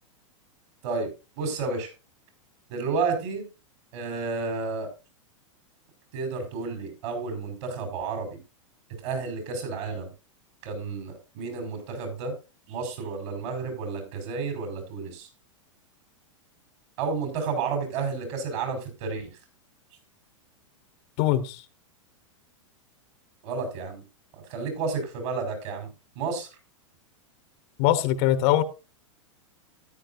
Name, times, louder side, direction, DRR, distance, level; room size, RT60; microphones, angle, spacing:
voice 1, 1.4-1.9 2.7-3.5 3.9-4.9 6.1-8.4 9.0-10.1 10.6-12.3 12.7-15.3 17.0-19.3 23.4-24.0 24.5-25.9 26.2-26.5, right 4 dB, 60° right, 5.6 m, -31 dB
voice 2, 21.2-21.6 27.8-28.6, left 12 dB, 50° left, 1.1 m, -22 dB
13.5 x 10.0 x 2.7 m
hypercardioid pair, 115°, 17 cm